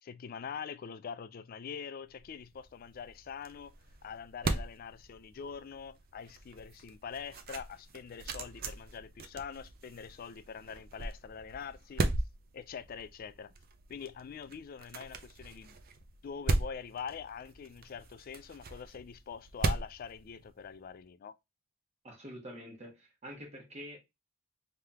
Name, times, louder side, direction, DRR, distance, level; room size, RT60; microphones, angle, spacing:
voice 1, 0.0-3.7 4.0-12.1 12.5-13.5 13.9-15.8 16.2-21.4, left 6 dB, 45° left, 0.3 m, -44 dB
sound 1, 2.1-20.9, right 2 dB, 50° right, 0.5 m, -39 dB
voice 2, 22.0-24.0, equal, 35° right, 1.4 m, -46 dB
3.3 x 2.9 x 3.4 m
head